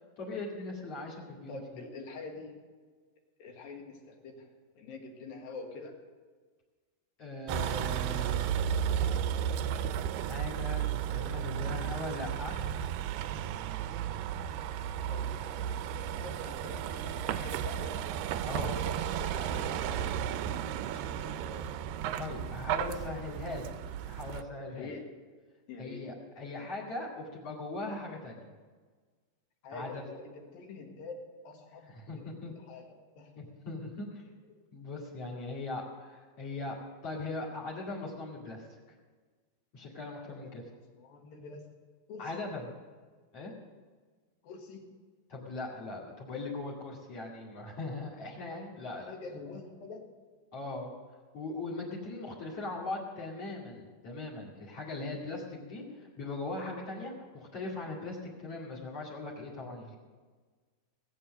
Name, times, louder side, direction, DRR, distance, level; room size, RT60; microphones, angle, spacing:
voice 1, 0.2-1.6 7.2-8.5 10.2-12.6 18.4-18.7 22.2-23.7 24.1-24.9 25.8-28.5 29.7-30.0 31.9-32.5 33.4-34.2 34.7-36.8 37.0-38.8 39.7-40.6 42.2-42.7 43.3-43.5 45.3-49.1 50.5-50.9 51.3-59.9, left 2 dB, 45° left, -1 dB, 3.0 m, -39 dB
voice 2, 1.5-2.6 3.4-4.5 4.8-6.0 15.1-18.0 18.6-21.6 24.7-25.1 25.7-26.1 29.6-31.2 31.4-31.9 32.1-33.3 34.5-34.6 40.2-40.3 40.6-40.7 40.9-41.7 42.1-42.4 44.4-44.8 49.0-50.1, left 3 dB, 70° left, 2 dB, 3.4 m, -46 dB
Vehicle, 7.5-24.4, right 9 dB, 80° right, 2.2 m, -34 dB
19.0 x 8.6 x 6.6 m, 1.5 s
omnidirectional pair, 4.4 m